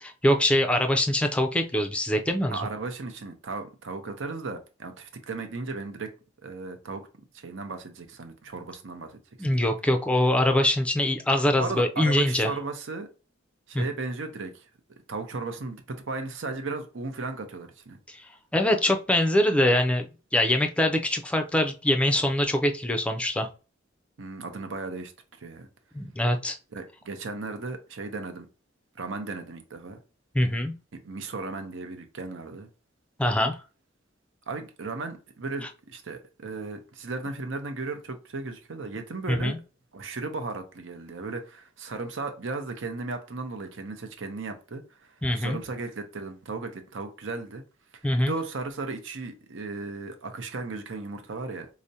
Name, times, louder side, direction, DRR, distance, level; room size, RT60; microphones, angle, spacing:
voice 1, 0.0-2.6 9.4-12.5 13.7-13.8 18.1-18.2 18.5-20.1 20.3-23.5 25.9-26.6 30.3-30.7 33.2-33.6 39.3-39.6 45.2-45.6 48.0-48.3, left 1 dB, 5° left, 0.4 m, -23 dB
voice 2, 2.5-6.1 6.4-7.0 7.3-9.2 9.5-9.6 11.6-13.1 13.7-14.7 15.1-18.0 24.2-25.1 25.4-25.7 26.7-28.5 29.0-30.0 31.0-32.7 34.5-39.5 39.9-47.6 47.9-51.7, right 3 dB, 80° right, 0.7 m, -35 dB
4.8 x 2.1 x 2.7 m
head